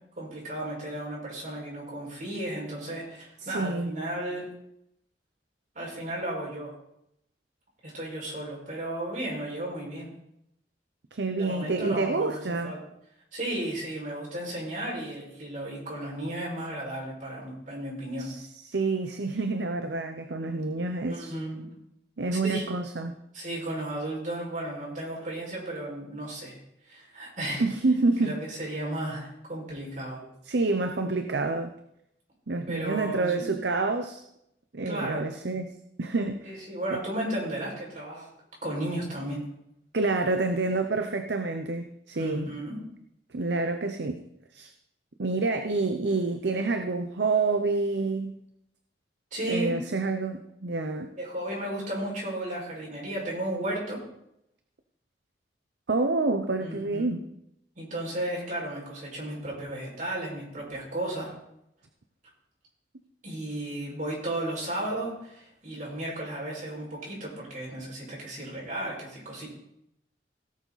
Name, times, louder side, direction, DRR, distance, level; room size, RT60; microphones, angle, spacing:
voice 1, 0.2-4.4 5.7-6.7 7.8-10.1 11.4-12.8 13.3-18.3 21.1-21.7 22.4-22.7 23.3-26.6 26.9-27.6 28.2-30.2 32.7-33.5 34.9-35.2 36.4-38.3 38.6-39.4 42.1-42.8 49.3-49.8 51.2-54.0 56.6-57.2 57.8-61.3 63.2-69.5, right 1 dB, 45° right, -4 dB, 5.8 m, -34 dB
voice 2, 3.4-3.9 11.1-12.8 18.2-21.3 22.2-23.1 27.6-28.4 30.5-31.7 32.5-34.2 34.7-35.7 36.0-36.6 36.9-37.0 39.9-42.5 43.3-44.2 44.5-44.7 45.2-48.3 49.5-51.1 55.9-57.2, right 3 dB, 75° right, 7 dB, 0.7 m, -28 dB
17.5 x 7.2 x 4.1 m, 0.79 s
head